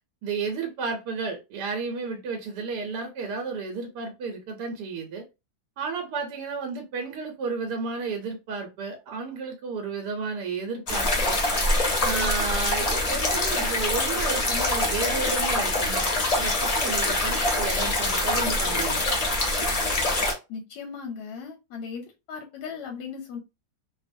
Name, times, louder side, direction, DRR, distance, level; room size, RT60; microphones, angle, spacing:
voice 1, 0.2-5.2 5.8-11.4 12.0-19.1, right 4 dB, 80° right, 1.2 m, -32 dB
sound 1, 10.9-20.3, left 2 dB, 50° left, 0.4 m, -25 dB
voice 2, 20.5-23.4, left 6 dB, 90° left, 1.2 m, -37 dB
2.9 x 2.1 x 2.5 m
omnidirectional pair, 1.8 m